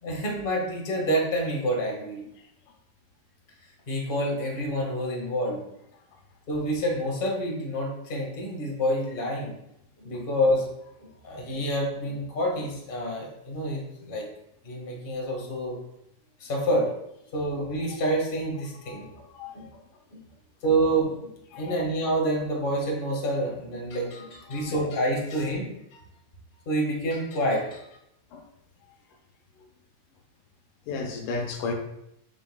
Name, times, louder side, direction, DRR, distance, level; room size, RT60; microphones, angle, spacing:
voice 1, 0.0-2.2 3.9-5.6 6.5-9.6 10.0-10.7 11.0-14.3 14.6-15.8 16.4-16.9 17.3-19.1 19.5-19.7 20.1-20.2 20.6-21.3 21.6-26.0 26.6-27.8, right 1 dB, 40° left, -1 dB, 0.7 m, -28 dB
voice 2, 18.8-19.7 21.5-21.9 24.5-24.7 28.3-28.4 30.9-31.7, left 4 dB, 80° left, 3 dB, 2.5 m, -35 dB
7.6 x 7.2 x 2.3 m, 0.80 s
omnidirectional pair, 3.8 m